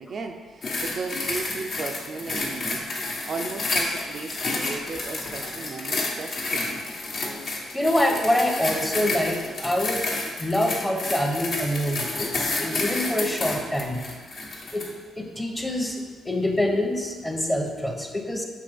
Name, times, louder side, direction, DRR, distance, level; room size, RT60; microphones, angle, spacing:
voice 1, 0.0-2.8 3.3-6.8, right 4 dB, 50° right, 4 dB, 0.4 m, -35 dB
sound 1, 0.6-15.0 15.6-15.7, left 2 dB, 55° left, 1.1 m, -30 dB
voice 2, 7.7-10.1 10.4-14.0 14.7-18.5, left 1 dB, 10° left, 2 dB, 0.9 m, -26 dB
6.8 x 3.3 x 5.0 m, 1.5 s
cardioid pair, 90°, 0 cm